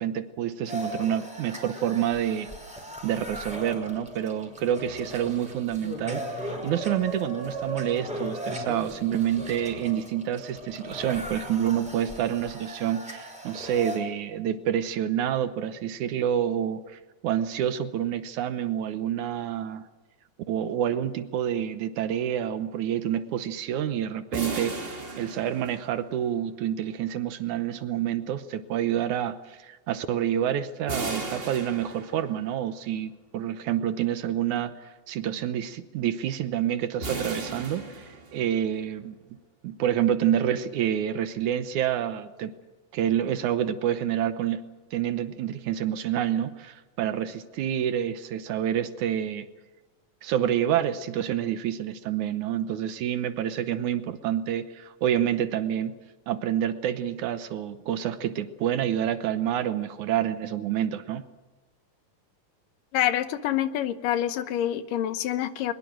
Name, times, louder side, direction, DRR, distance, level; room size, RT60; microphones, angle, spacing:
voice 1, 0.0-2.5 3.0-19.8 20.5-34.7 35.1-39.1 39.6-42.5 42.9-44.6 44.9-49.5 50.2-56.0 56.3-61.3, right 10 dB, 70° right, 11 dB, 2.2 m, -28 dB
sound 1, 0.7-14.0, equal, ahead, 5.0 m, -37 dB
sound 2, 24.3-26.2 30.9-32.5 37.0-38.7, right 3 dB, 20° right, 1.7 m, -35 dB
voice 2, 62.9-65.7, left 11 dB, 80° left, 12 dB, 2.6 m, -27 dB
22.5 x 21.5 x 7.6 m, 1.2 s
omnidirectional pair, 3.9 m